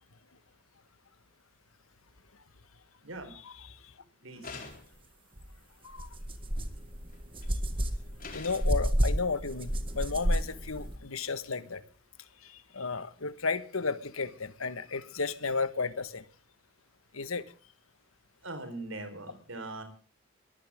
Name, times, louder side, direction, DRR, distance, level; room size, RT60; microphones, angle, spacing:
voice 1, 3.0-3.3 4.2-4.6 18.4-19.8, right 2 dB, 80° right, 4.4 m, -41 dB
sound 1, 4.4-5.1 7.1-7.5 8.2-8.8, left 4 dB, 40° left, 3.9 m, -44 dB
sound 2, 5.4-5.5 5.9-11.0, equal, 25° right, 1.8 m, -31 dB
voice 2, 8.3-11.8 12.4-16.2 17.1-17.4, left 4 dB, 90° left, 1.5 m, -33 dB
22.0 x 15.5 x 3.6 m
head